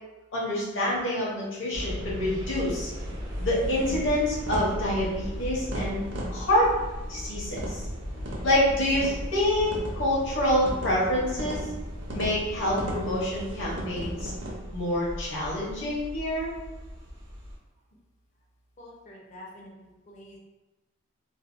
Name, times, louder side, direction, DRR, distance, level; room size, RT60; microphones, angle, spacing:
voice 1, 0.3-2.9 3.4-6.0 6.3-6.8 7.1-7.8 8.4-11.7 12.1-14.3 14.7-16.5, left 1 dB, 65° left, -6 dB, 0.8 m, -27 dB
sound 1, 1.7-17.6, equal, 85° right, 0.8 m, -38 dB
sound 2, 3.0-14.5, equal, 60° right, 0.6 m, -37 dB
voice 2, 18.8-20.4, left 1 dB, 35° left, -2 dB, 0.4 m, -47 dB
2.6 x 2.1 x 2.4 m, 1.1 s
head